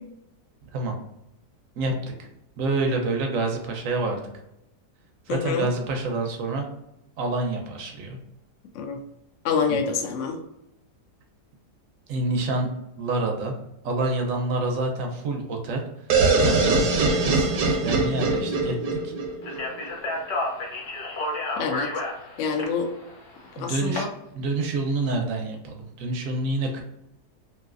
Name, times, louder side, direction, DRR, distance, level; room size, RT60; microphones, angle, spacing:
voice 1, 1.8-2.1 2.6-4.2 5.3-6.7 7.2-8.2 9.7-9.8 12.1-12.7 13.0-13.5 13.8-16.0 16.4-19.1 23.6-24.0 24.3-26.8, right 2 dB, 65° right, 2 dB, 0.9 m, -27 dB
voice 2, 5.3-5.7 8.7-9.0 9.4-10.4 21.6-21.9 22.4-22.9 23.6-24.1, left 6 dB, 70° left, 4 dB, 0.7 m, -26 dB
sound 1, 16.1-19.9, right 3 dB, 80° right, 1.3 m, -22 dB
Speech, 19.4-24.0, left 2 dB, 55° left, 1.0 m, -31 dB
3.1 x 2.6 x 2.4 m, 0.86 s
omnidirectional pair, 1.8 m